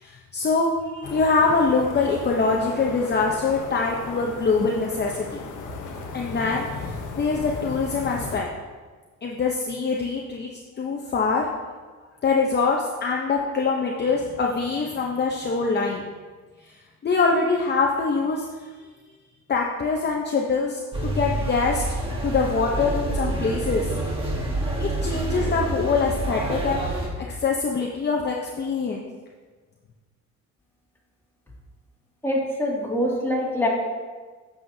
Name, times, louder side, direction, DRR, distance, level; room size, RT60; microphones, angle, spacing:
voice 1, 0.0-5.4 6.1-8.5 9.2-10.5 10.8-11.5 12.2-16.0 17.0-18.4 19.5-21.8 22.2-23.9 24.8-27.1 27.4-29.1, left 4 dB, 35° left, 0 dB, 0.8 m, -24 dB
sound 1, 1.0-8.4, left 4 dB, 90° left, 1.1 m, -36 dB
sound 2, 20.9-27.1, right 1 dB, 20° right, 1.5 m, -27 dB
voice 2, 32.2-33.7, left 1 dB, 10° left, -4 dB, 2.3 m, -24 dB
9.1 x 7.1 x 2.8 m, 1.4 s
cardioid pair, 90°, 30 cm